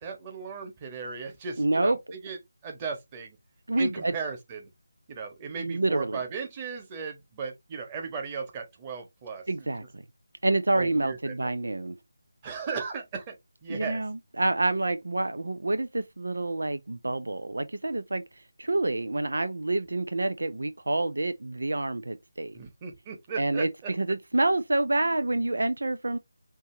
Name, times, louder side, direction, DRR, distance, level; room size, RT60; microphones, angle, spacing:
voice 1, 0.0-2.4 2.6-3.4 3.8-4.7 5.1-9.7 10.7-11.5 12.4-13.3 13.6-14.0 22.5-23.9, right 5 dB, 20° right, 1.4 m, -37 dB
voice 2, 1.6-2.0 3.7-4.1 5.6-6.2 9.5-10.0 10.4-12.0 13.7-18.2 18.6-22.6 23.4-23.7 24.0-26.2, right 2 dB, 70° right, 0.5 m, -27 dB
5.4 x 2.9 x 2.8 m
figure-of-eight pair, 160°, 0 cm